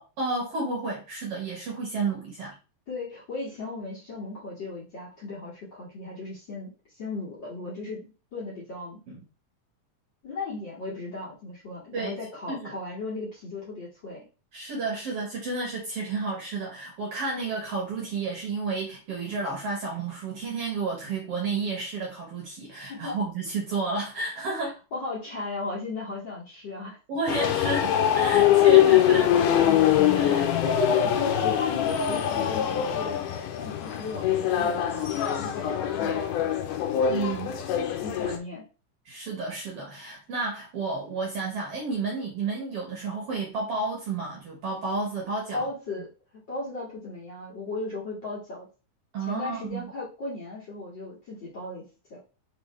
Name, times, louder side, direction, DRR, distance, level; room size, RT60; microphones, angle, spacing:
voice 1, 0.2-2.6 9.1-9.2 11.9-12.1 12.5-12.7 14.5-24.8 27.1-29.4 29.7-30.5 37.1-37.5 38.3-38.4 39.0-45.7 49.1-49.9, right 3 dB, 60° right, 1.8 m, -31 dB
voice 2, 2.9-9.0 10.2-14.3 22.9-23.2 24.6-27.0 30.6-36.2 37.5-37.6 38.0-38.7 45.5-46.1 46.5-48.7 49.3-52.2, left 3 dB, 40° left, 2.2 m, -36 dB
sound 1, 27.3-38.4, left 10 dB, 85° left, 2.1 m, -23 dB
4.9 x 3.4 x 3.2 m
omnidirectional pair, 3.6 m